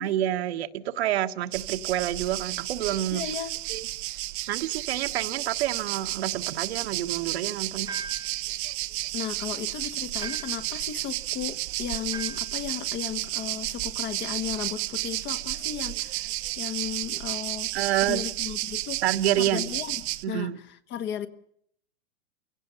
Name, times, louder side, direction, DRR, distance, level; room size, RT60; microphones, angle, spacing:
voice 1, 0.0-3.2 3.7-3.9 4.5-7.9 17.7-18.2 19.0-19.7 20.2-20.6, right 12 dB, 65° right, 1.4 m, -28 dB
sound 1, 1.5-20.2, right 19 dB, 45° right, 0.9 m, -32 dB
voice 2, 3.1-3.5 9.1-17.7 18.0-19.0 19.4-21.3, left 10 dB, 30° left, 1.3 m, -35 dB
sound 2, 7.9-8.4 10.2-10.7 12.1-12.5, right 4 dB, 10° right, 0.9 m, -39 dB
29.5 x 17.0 x 6.9 m
hypercardioid pair, 130°, 34 cm